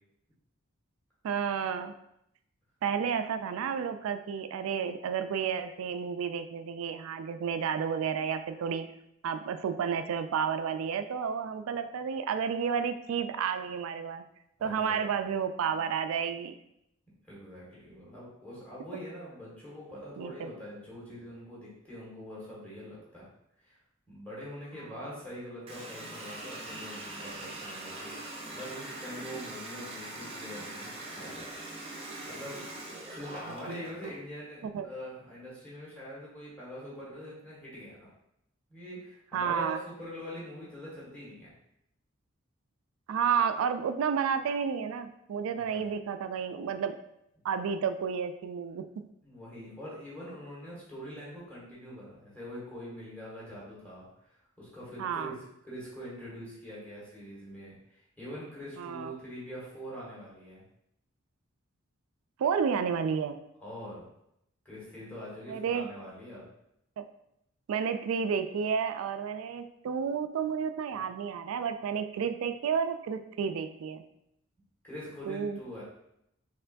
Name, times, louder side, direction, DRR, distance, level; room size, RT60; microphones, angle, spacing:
voice 1, 1.2-1.9 2.8-8.9 9.2-14.2 14.6-16.5 20.2-20.5 33.4-33.8 34.6-34.9 39.3-39.8 43.1-47.0 47.4-49.1 55.0-55.3 58.8-59.1 62.4-63.4 65.5-65.9 67.0-67.1 67.7-74.0 75.3-75.6, right 7 dB, 85° right, 9 dB, 0.3 m, -31 dB
voice 2, 14.6-15.2 17.3-23.3 23.6-23.8 24.1-31.5 31.8-32.6 33.1-38.1 38.7-41.5 45.5-45.9 49.2-55.3 55.6-60.6 63.6-64.1 64.6-66.5 74.8-75.8, equal, 10° left, -8 dB, 1.4 m, -44 dB
Water tap faucet, 25.7-34.2, right 1 dB, 25° right, 0.5 m, -42 dB
4.3 x 3.1 x 2.6 m, 0.79 s
head